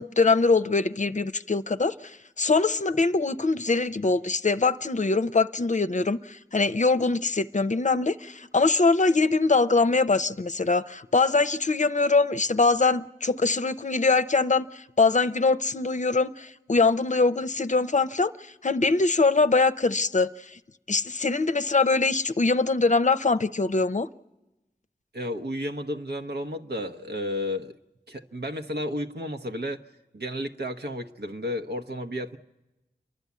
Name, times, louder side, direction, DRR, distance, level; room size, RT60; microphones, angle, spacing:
voice 1, 0.0-18.3 18.6-20.6 20.9-24.1, left 3 dB, 45° left, 0.6 m, -23 dB
voice 2, 25.1-27.8 28.1-29.8 30.1-32.4, left 1 dB, 80° right, 1.1 m, -32 dB
29.5 x 11.5 x 8.3 m
wide cardioid pair, 45°, 17 cm